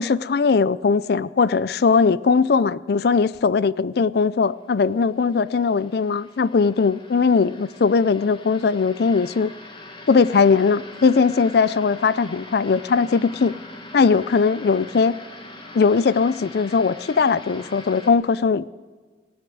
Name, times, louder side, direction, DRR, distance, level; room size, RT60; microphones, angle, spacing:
voice 1, 0.0-9.5 10.1-13.6 13.9-15.2 15.7-18.7, left 5 dB, 60° left, 18 dB, 0.4 m, -19 dB
sound 1, 4.6-18.1, left 1 dB, 25° left, 1.4 m, -42 dB
16.5 x 9.3 x 9.3 m, 1.4 s
head